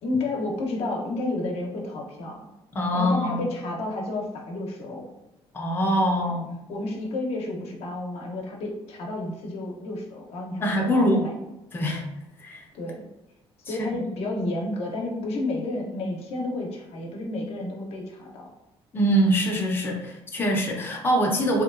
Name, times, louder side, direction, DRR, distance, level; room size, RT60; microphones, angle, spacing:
voice 1, 0.0-2.5 2.9-5.1 6.1-6.4 6.7-11.3 12.7-13.0 13.7-18.5, left 2 dB, 70° left, 0 dB, 0.6 m, -31 dB
voice 2, 2.7-3.4 5.5-6.5 10.6-11.2 11.7-12.0 12.4-12.6 13.7-13.9 18.9-21.6, equal, 20° left, -1 dB, 0.5 m, -23 dB
2.8 x 2.2 x 2.4 m, 0.93 s
cardioid pair, 110°, 11 cm